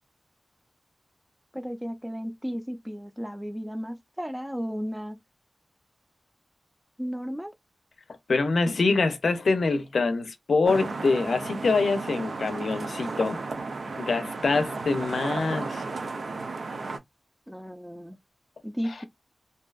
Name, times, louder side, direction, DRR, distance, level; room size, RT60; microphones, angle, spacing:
voice 1, 1.5-5.2 7.0-7.5 17.5-18.2 18.6-19.1, equal, 5° right, 0.4 m, -34 dB
voice 2, 8.3-13.4 14.0-15.8, left 3 dB, 85° left, 0.5 m, -25 dB
sound 1, 10.6-17.0, right 3 dB, 75° right, 0.5 m, -34 dB
2.6 x 2.3 x 2.2 m
wide cardioid pair, 85°, 0 cm